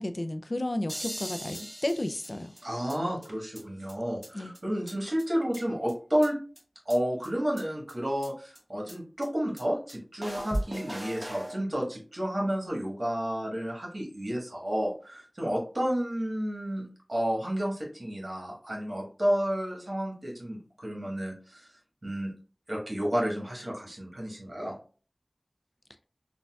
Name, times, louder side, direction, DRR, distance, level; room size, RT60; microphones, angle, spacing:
voice 1, 0.0-2.5 4.3-4.5, left 1 dB, 60° left, 8 dB, 0.3 m, -32 dB
sound 1, 0.9-2.9 3.2-3.3 3.5-3.6 3.9-4.0 4.2-4.3 4.5-4.6 4.9-5.0 5.2-5.9 6.2-6.3 6.6-6.7 6.9-7.0 7.2-7.3 7.6-7.7 7.9-8.0 8.2-8.3 8.5-8.6 8.9-9.0 9.2-9.3 9.6-9.7 9.9-10.0 10.2-11.5, equal, 15° right, 1.2 m, -37 dB
voice 2, 2.6-6.4 6.8-21.7 22.0-22.3 22.7-24.8, equal, 55° right, -1 dB, 1.3 m, -31 dB
3.9 x 2.3 x 2.3 m, 0.38 s
wide cardioid pair, 45°, 0 cm